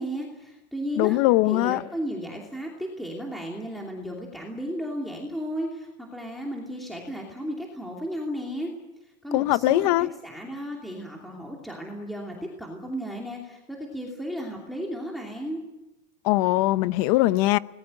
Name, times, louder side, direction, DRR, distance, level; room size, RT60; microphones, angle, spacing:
voice 1, 0.0-1.2 1.5-8.7 9.2-15.6, equal, ahead, 2.8 m, -34 dB
voice 2, 1.0-1.8 9.3-10.1 16.2-17.6, left 18 dB, 60° left, 0.8 m, -21 dB
26.5 x 19.5 x 7.8 m
supercardioid pair, 160°, 21 cm